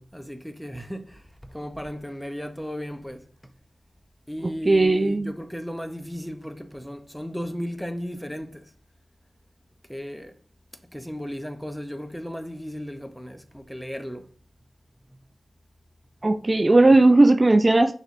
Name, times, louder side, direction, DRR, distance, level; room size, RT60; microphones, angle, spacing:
voice 1, 0.0-3.5 4.3-8.7 9.9-10.4 10.9-14.3 15.1-15.2, equal, 5° left, 0.6 m, -35 dB
voice 2, 4.7-5.3 16.2-17.9, right 2 dB, 35° right, 0.3 m, -17 dB
6.4 x 3.2 x 2.5 m
cardioid pair, 55°, 0 cm